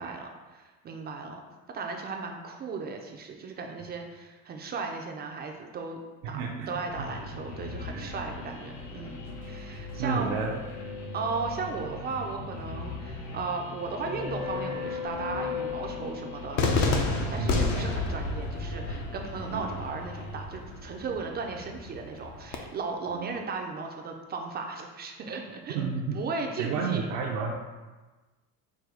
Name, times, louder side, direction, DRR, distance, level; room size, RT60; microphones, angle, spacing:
voice 1, 0.0-1.4 1.7-6.0 6.3-6.4 6.7-9.2 9.4-10.3 11.1-25.8 26.1-27.1, right 4 dB, 30° right, 2 dB, 0.4 m, -36 dB
voice 2, 6.2-7.1 7.9-8.1 10.0-10.6 17.4-17.7 19.5-19.7 23.1-23.3 25.7-26.2 26.6-27.6, right 5 dB, 85° right, -2 dB, 0.6 m, -31 dB
sound 1, 6.9-20.4, left 3 dB, 80° left, 1.1 m, -38 dB
Cheering / Fireworks, 16.6-22.6, left 3 dB, 55° left, 0.7 m, -31 dB
4.7 x 2.2 x 4.8 m, 1.2 s
cardioid pair, 130°, 35 cm